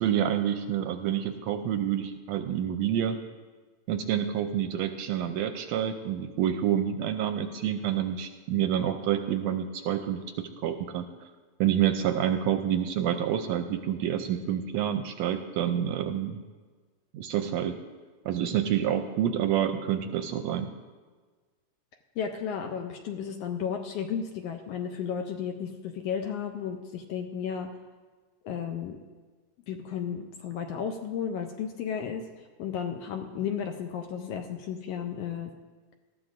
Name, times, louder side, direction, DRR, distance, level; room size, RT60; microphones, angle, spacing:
voice 1, 0.0-3.2 3.9-11.1 11.6-16.4 17.1-17.8 18.2-20.7, right 10 dB, 80° right, 7 dB, 1.6 m, -28 dB
voice 2, 22.2-27.7 28.4-29.0 29.7-35.5, left 7 dB, 75° left, 5 dB, 1.5 m, -33 dB
19.0 x 13.5 x 2.5 m, 1.4 s
omnidirectional pair, 3.3 m